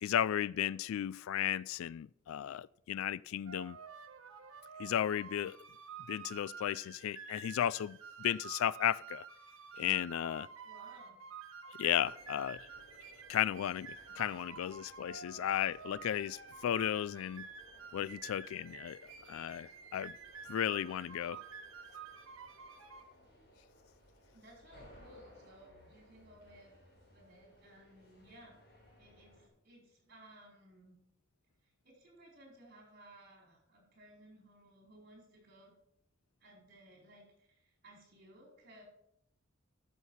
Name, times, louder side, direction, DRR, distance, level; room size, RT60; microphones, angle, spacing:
voice 1, 0.0-3.8 4.8-5.6 6.1-9.3 9.8-10.5 11.8-12.6 13.3-17.5 17.9-20.1 20.5-21.4, left 10 dB, 80° left, 0.3 m, -34 dB
sound 1, 3.4-23.0, right 6 dB, 75° right, 1.2 m, -50 dB
voice 2, 10.6-11.2 24.3-26.8 27.1-28.6 29.0-30.9 31.6-35.7 36.4-38.8, right 1 dB, 45° right, 4.6 m, -59 dB
sound 2, 11.8-29.5, equal, 45° left, 4.6 m, -62 dB
12.5 x 6.6 x 5.6 m
head